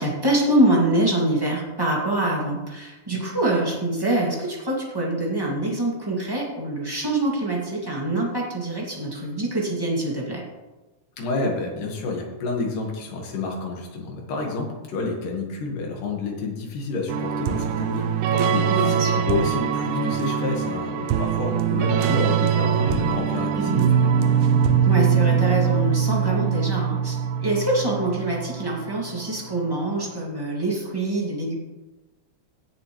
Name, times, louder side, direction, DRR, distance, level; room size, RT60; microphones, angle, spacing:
voice 1, 0.0-10.4 18.7-19.2 23.6-23.9 24.8-27.2 27.4-31.5, right 1 dB, 10° right, -3 dB, 1.7 m, -25 dB
voice 2, 11.2-18.1 18.5-24.1, left 3 dB, 85° left, 0 dB, 3.3 m, -29 dB
sound 1, 17.1-29.7, right 8 dB, 75° right, 1.9 m, -22 dB
16.5 x 7.2 x 3.2 m, 1.1 s
omnidirectional pair, 3.6 m